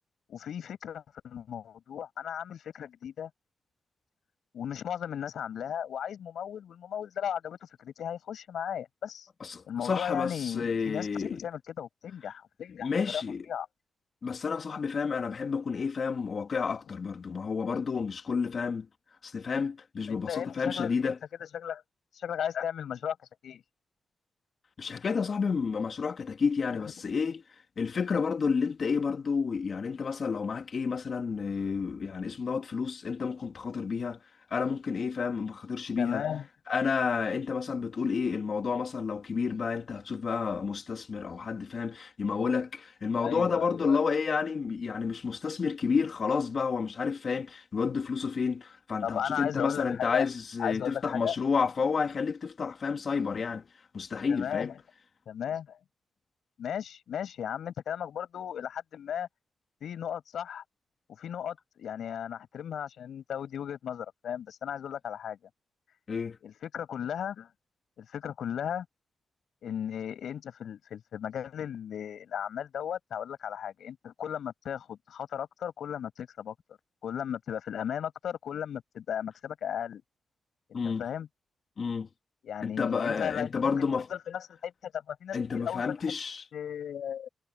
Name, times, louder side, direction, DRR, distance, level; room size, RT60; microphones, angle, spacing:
voice 1, 0.3-3.3 4.5-9.3 9.7-13.2 13.5-13.7 20.1-21.1 21.4-21.8 22.1-23.2 23.4-23.6 36.0-36.5 43.2-44.0 49.0-50.3 50.6-51.4 54.3-54.7 55.3-55.8 56.6-59.3 59.8-60.6 61.2-65.4 66.4-67.5 68.0-68.9 69.6-76.5 77.0-80.0 80.7-81.3 82.4-83.8 84.1-86.1 86.5-87.3, left 9 dB, 80° left, 7.0 m, -36 dB
voice 2, 9.4-11.4 12.8-13.5 14.2-18.9 19.2-21.2 24.8-27.4 27.8-34.2 34.5-36.2 36.7-53.7 53.9-54.7 66.1-66.4 80.7-81.0 81.8-82.1 82.6-84.1 85.3-86.4, left 5 dB, 55° left, 2.2 m, -30 dB
cardioid pair, 80°, 0 cm